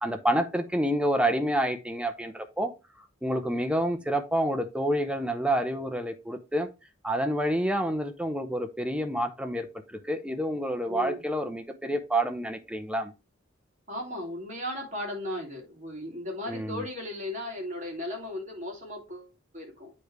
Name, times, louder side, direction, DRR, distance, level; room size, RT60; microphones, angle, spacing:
voice 1, 0.0-2.7 3.2-6.7 7.0-13.1 16.5-16.8, right 1 dB, 5° right, 8 dB, 0.7 m, -28 dB
voice 2, 10.9-11.2 13.9-19.9, left 1 dB, 40° right, 0 dB, 2.6 m, -36 dB
8.4 x 3.3 x 4.7 m, 0.28 s
head